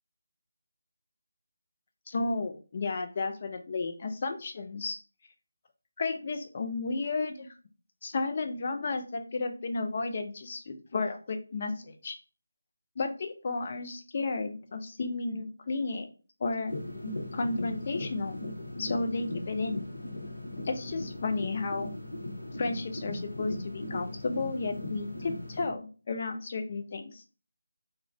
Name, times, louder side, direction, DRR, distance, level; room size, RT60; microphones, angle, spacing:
voice 1, 2.1-5.0 6.0-7.5 8.0-12.2 13.0-16.1 16.4-16.7 17.3-18.4 18.8-19.9 20.6-21.9 22.6-27.2, left 3 dB, 35° left, 5 dB, 0.3 m, -33 dB
sound 1, 16.7-25.7, left 1 dB, 60° left, 0.8 m, -38 dB
2.3 x 2.1 x 2.9 m, 0.37 s
figure-of-eight pair, 155°, 0 cm